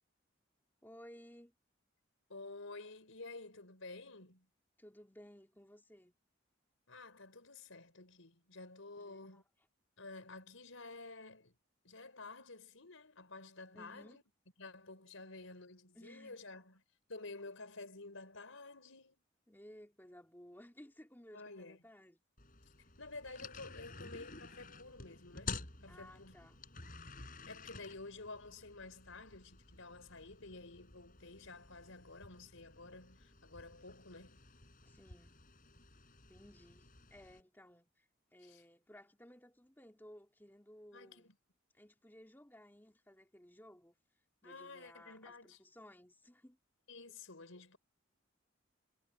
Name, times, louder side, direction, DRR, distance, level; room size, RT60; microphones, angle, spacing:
voice 1, 0.8-1.5 4.8-6.1 9.0-9.4 13.7-14.2 15.9-16.4 19.5-22.2 25.9-26.6 34.9-35.4 36.3-41.3 41.7-44.0 44.4-46.6, equal, 10° left, 2.8 m, -58 dB
voice 2, 2.3-4.5 6.9-9.4 10.0-11.6 11.8-14.2 14.6-16.8 17.1-19.2 21.3-21.8 23.0-26.3 27.5-34.4 38.4-38.6 40.9-41.3 44.4-45.6 46.9-47.8, left 3 dB, 85° left, 4.8 m, -51 dB
sound 1, 22.4-37.4, left 4 dB, 40° left, 5.4 m, -51 dB
head